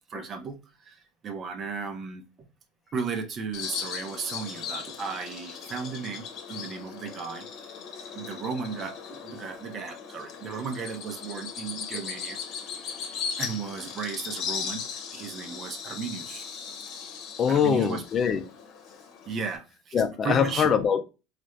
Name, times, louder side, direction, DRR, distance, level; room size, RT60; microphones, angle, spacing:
voice 1, 0.1-2.2 2.9-7.5 8.1-12.6 13.4-14.8 15.1-16.6 17.5-18.0 19.3-20.7, right 5 dB, 40° right, 0.8 m, -35 dB
Bird vocalization bird call bird song, 3.5-19.6, left 6 dB, 60° left, 0.9 m, -38 dB
voice 2, 17.4-18.4 19.9-21.0, left 7 dB, 40° left, 0.5 m, -23 dB
4.0 x 2.5 x 3.1 m
supercardioid pair, 95°, 0 cm